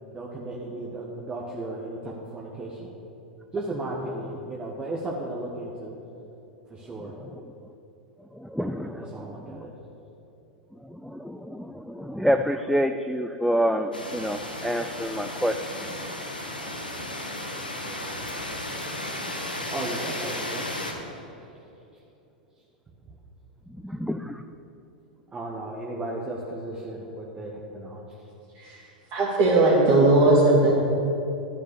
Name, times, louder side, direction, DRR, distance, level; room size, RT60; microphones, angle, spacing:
voice 1, 0.1-2.9 3.5-6.0 6.7-7.1 8.8-9.7 19.7-20.7 20.9-21.5 25.3-28.0, right 2 dB, 20° right, -2 dB, 1.2 m, -35 dB
voice 2, 8.4-9.3 10.9-15.6 23.8-24.4, equal, ahead, 7 dB, 0.3 m, -27 dB
sound 1, 13.9-20.9, left 1 dB, 85° left, 1.2 m, -34 dB
voice 3, 29.1-30.7, right 2 dB, 35° right, -8 dB, 2.3 m, -18 dB
11.5 x 6.1 x 6.8 m, 2.9 s
figure-of-eight pair, 90°, 5 cm